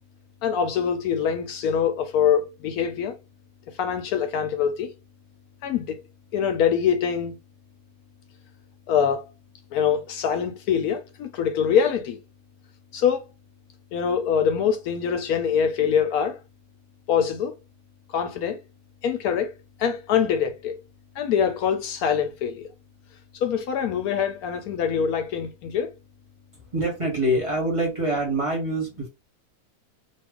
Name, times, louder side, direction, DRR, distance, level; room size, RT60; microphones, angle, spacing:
voice 1, 0.4-3.2 3.8-4.9 5.6-6.0 6.3-7.4 8.9-9.3 9.7-12.2 12.9-13.2 13.9-16.4 17.1-17.6 18.1-18.6 19.0-19.5 19.8-20.8 21.2-22.7 23.4-25.9, left 7 dB, 75° left, 1.0 m, -24 dB
voice 2, 26.7-29.1, right 1 dB, 20° right, 1.1 m, -25 dB
2.8 x 2.3 x 3.5 m
omnidirectional pair, 1.7 m